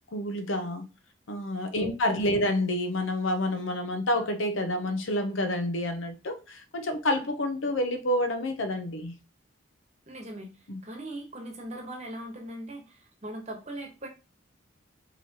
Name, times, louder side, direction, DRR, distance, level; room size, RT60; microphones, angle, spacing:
voice 1, 0.1-0.9 1.3-9.1 10.7-10.8, left 1 dB, 75° left, 0.7 m, -28 dB
voice 2, 1.8-2.4 10.1-14.1, right 1 dB, 35° right, 1.1 m, -40 dB
4.9 x 3.1 x 2.8 m
head